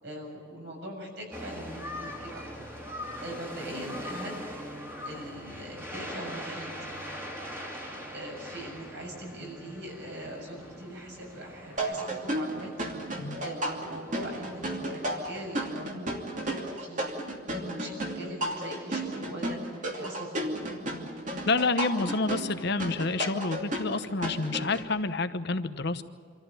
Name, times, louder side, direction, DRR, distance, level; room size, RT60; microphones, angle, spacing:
voice 1, 0.0-4.5 5.1-6.8 8.1-12.7 13.4-17.0 17.5-20.7, right 1 dB, 60° right, 0 dB, 7.1 m, -41 dB
sound 1, 1.3-15.7, equal, 10° right, 2.7 m, -42 dB
sound 2, 11.8-24.8, right 1 dB, 40° right, 2.8 m, -33 dB
voice 2, 21.5-26.0, left 3 dB, 55° left, 10 dB, 1.1 m, -28 dB
26.5 x 14.0 x 9.2 m, 2.3 s
head